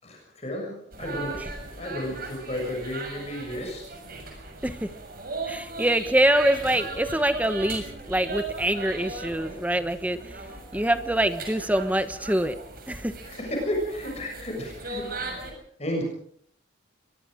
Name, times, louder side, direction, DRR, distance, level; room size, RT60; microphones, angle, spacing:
voice 1, 0.0-1.5 1.8-3.9 13.2-15.4 15.8-16.0, left 1 dB, 35° left, 1 dB, 6.7 m, -32 dB
sound 1, 0.9-15.5, right 3 dB, 50° right, 6.8 m, -38 dB
voice 2, 5.5-10.2 10.7-12.6 12.9-13.1, right 1 dB, 10° right, 10 dB, 1.2 m, -24 dB
24.5 x 22.5 x 5.1 m, 0.65 s
head